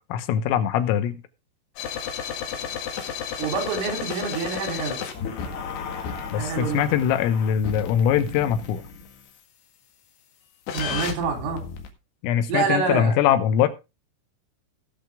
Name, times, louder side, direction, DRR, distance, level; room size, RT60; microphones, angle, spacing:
voice 1, 0.1-1.2 6.3-8.8 12.2-13.7, left 9 dB, 85° left, 3.7 m, -22 dB
sound 1, 1.8-9.2 10.7-11.9, left 7 dB, 65° left, 3.4 m, -33 dB
voice 2, 3.4-5.0 6.4-6.9 10.7-11.6 12.5-13.1, right 5 dB, 75° right, 5.9 m, -27 dB
19.0 x 6.8 x 3.6 m
omnidirectional pair, 5.8 m